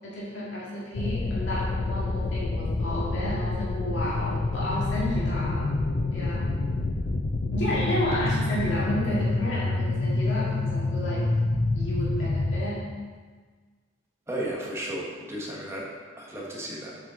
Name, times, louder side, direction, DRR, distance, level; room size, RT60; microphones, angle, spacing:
voice 1, 0.0-5.7 6.1-6.4 7.5-11.2 11.7-12.9, equal, 70° left, -7 dB, 1.9 m, -31 dB
sound 1, 0.9-12.6, left 2 dB, 50° left, 0.5 m, -27 dB
voice 2, 14.3-15.8 16.2-17.0, right 1 dB, 15° right, -4 dB, 1.2 m, -34 dB
7.5 x 5.2 x 3.7 m, 1.5 s
head